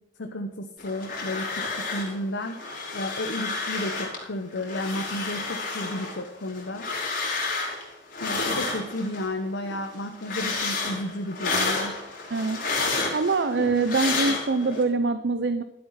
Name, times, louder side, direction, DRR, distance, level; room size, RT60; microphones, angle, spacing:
voice 1, 0.2-2.6 2.9-6.9 8.2-11.9, left 1 dB, 80° left, 4 dB, 1.0 m, -32 dB
sound 1, 0.8-2.2 2.4-4.2 4.6-9.3 9.6-14.8, left 3 dB, 50° left, 3.9 m, -30 dB
voice 2, 13.1-15.6, right 3 dB, 65° right, 12 dB, 0.6 m, -24 dB
12.5 x 8.0 x 5.7 m, 0.89 s
head